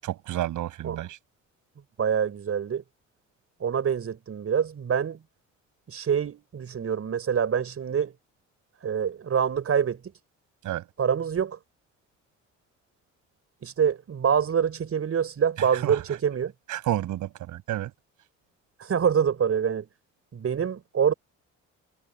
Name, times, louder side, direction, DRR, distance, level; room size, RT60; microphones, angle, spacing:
voice 1, 0.0-1.2 10.6-10.8 15.6-16.0 16.7-17.9, right 13 dB, 80° right, 6.6 m, -30 dB
voice 2, 2.0-2.8 3.6-5.2 5.9-8.1 8.8-10.0 11.0-11.6 13.6-16.5 18.8-19.9 20.3-21.1, right 7 dB, 50° right, 6.8 m, -25 dB
cardioid pair, 90°, 30 cm